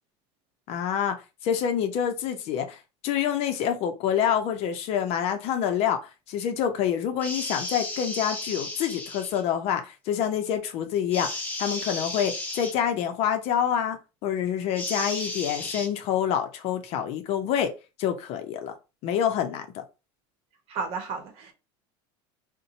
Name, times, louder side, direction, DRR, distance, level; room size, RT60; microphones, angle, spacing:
voice 1, 0.7-1.2 1.4-2.8 3.0-6.0 6.3-11.3 11.6-17.7 18.0-18.7 19.0-19.8, left 9 dB, 50° left, 0.6 m, -27 dB
sound 1, 7.2-9.4 11.1-12.7 14.7-15.9, left 2 dB, 15° left, 0.7 m, -34 dB
voice 2, 20.7-21.5, right 5 dB, 50° right, 1.0 m, -33 dB
2.6 x 2.2 x 4.0 m
supercardioid pair, 135°, 13 cm